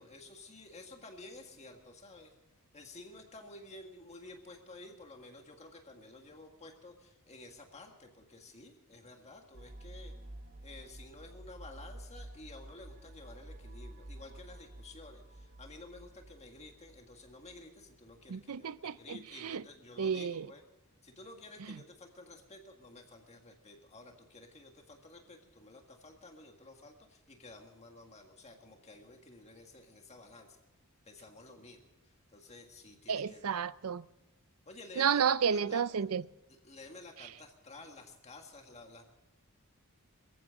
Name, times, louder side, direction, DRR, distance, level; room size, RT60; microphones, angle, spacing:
voice 1, 0.0-2.3 2.7-10.1 10.6-20.6 21.0-30.6 31.0-33.6 34.6-35.8 36.5-39.0, left 2 dB, 30° left, 1.8 m, -52 dB
sound 1, 9.5-18.2, right 1 dB, 50° right, 1.2 m, -50 dB
voice 2, 18.3-19.6 20.0-20.5 33.1-34.0 35.0-36.2, right 7 dB, 70° right, 0.5 m, -31 dB
23.0 x 15.0 x 3.8 m
head